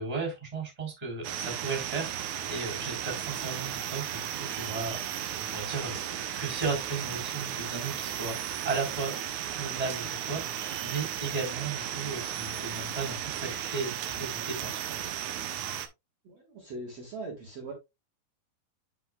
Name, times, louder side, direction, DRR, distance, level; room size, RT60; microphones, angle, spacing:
voice 1, 0.0-6.0 6.3-9.1 9.5-10.4 10.8-14.8, right 4 dB, 10° right, 2 dB, 3.0 m, -35 dB
sound 1, 1.2-15.9, right 10 dB, 80° right, 1.7 m, -35 dB
voice 2, 16.2-17.7, right 2 dB, 50° right, -1 dB, 2.4 m, -40 dB
9.1 x 5.8 x 2.3 m, 0.22 s
omnidirectional pair, 4.5 m